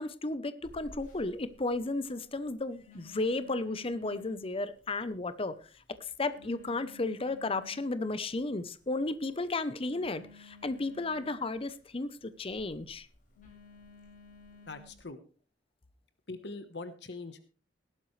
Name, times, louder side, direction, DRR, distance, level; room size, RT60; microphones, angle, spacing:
voice 1, 0.0-5.5 6.0-13.1, left 2 dB, 30° left, 13 dB, 0.8 m, -34 dB
Telephone, 0.6-15.0, left 3 dB, 50° left, 5.6 m, -56 dB
voice 2, 14.7-15.2 16.3-17.4, left 3 dB, 70° left, 10 dB, 1.2 m, -42 dB
17.5 x 12.0 x 3.2 m, 0.38 s
head